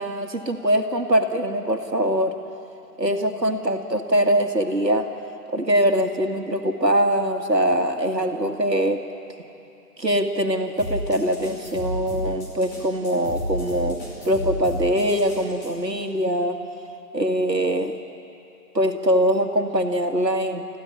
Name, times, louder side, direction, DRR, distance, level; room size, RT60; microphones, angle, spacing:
voice 1, 0.0-2.3 3.0-5.1 5.5-9.0 10.0-16.6 17.1-18.0 18.7-20.7, equal, 85° right, 5 dB, 2.1 m, -22 dB
sound 1, 10.8-15.7, equal, 25° left, 4.9 m, -32 dB
27.0 x 15.0 x 9.8 m, 2.8 s
figure-of-eight pair, 150°, 49 cm